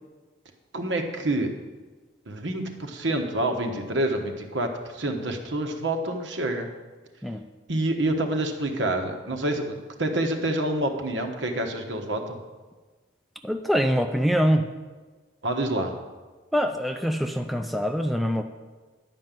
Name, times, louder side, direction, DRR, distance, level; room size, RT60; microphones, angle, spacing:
voice 1, 0.7-1.5 2.3-6.7 7.7-12.4 15.4-15.9, right 1 dB, 80° right, 4 dB, 1.2 m, -27 dB
voice 2, 13.4-14.7 16.5-18.4, equal, ahead, 5 dB, 0.4 m, -24 dB
11.0 x 5.4 x 7.5 m, 1.3 s
head